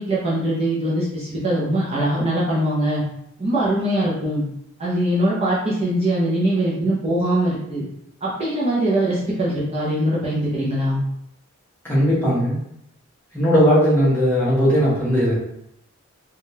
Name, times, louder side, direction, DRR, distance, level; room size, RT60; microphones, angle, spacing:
voice 1, 0.0-3.0 3.4-4.4 4.8-7.8 8.2-11.0, right 1 dB, 30° right, -6 dB, 0.6 m, -22 dB
voice 2, 11.8-12.6 13.3-15.3, equal, 10° left, -8 dB, 0.9 m, -18 dB
3.5 x 2.3 x 2.7 m, 0.76 s
head